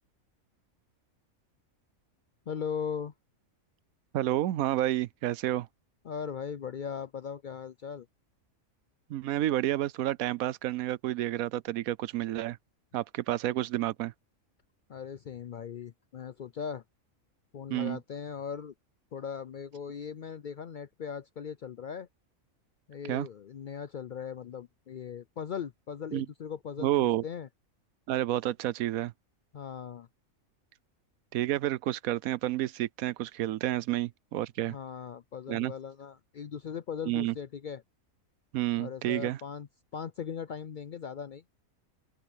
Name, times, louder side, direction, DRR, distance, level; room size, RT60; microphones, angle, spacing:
voice 1, 2.5-3.1 6.0-8.1 14.9-16.8 17.5-18.7 19.1-22.1 22.9-27.5 29.5-30.1 34.6-37.8 38.8-41.4, left 7 dB, 75° left, 0.4 m, -39 dB
voice 2, 4.1-5.7 9.1-12.6 12.9-14.1 17.7-18.0 23.1-23.3 26.1-26.3 26.8-27.2 28.1-29.1 31.3-34.8 35.5-35.7 37.1-37.3 38.5-39.4, right 14 dB, 85° right, 1.1 m, -30 dB
open air
omnidirectional pair, 1.5 m